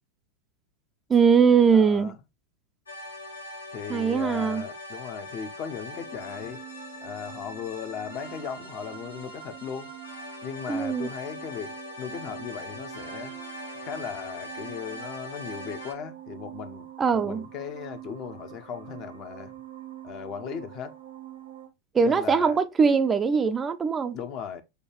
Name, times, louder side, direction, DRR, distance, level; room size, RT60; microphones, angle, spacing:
voice 1, 1.1-2.1 3.9-4.6 10.7-11.1 17.0-17.4 21.9-24.2, right 6 dB, 20° right, 0.4 m, -21 dB
voice 2, 1.7-2.2 3.7-6.6 7.0-9.9 10.4-13.4 13.7-16.9 17.1-19.5 20.0-20.9 22.0-22.6 24.1-24.6, left 7 dB, 40° left, 0.6 m, -37 dB
sound 1, 2.9-15.9, left 1 dB, 75° left, 1.1 m, -41 dB
sound 2, 5.9-21.7, right 13 dB, 80° right, 1.3 m, -45 dB
6.4 x 2.3 x 2.9 m
figure-of-eight pair, 90°, 0 cm